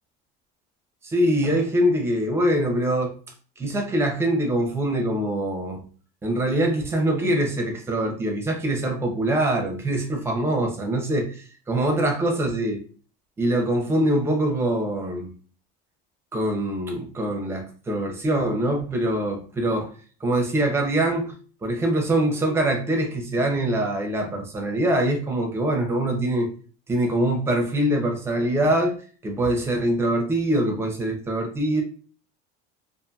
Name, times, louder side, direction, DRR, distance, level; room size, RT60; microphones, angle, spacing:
voice 1, 1.0-3.2 3.6-5.8 6.2-12.8 13.4-15.3 16.3-19.9 20.2-21.3 21.6-26.5 26.9-29.0 29.2-31.8, right 1 dB, 10° right, 2 dB, 0.6 m, -23 dB
2.6 x 2.5 x 2.3 m, 0.40 s
cardioid pair, 155°, 20 cm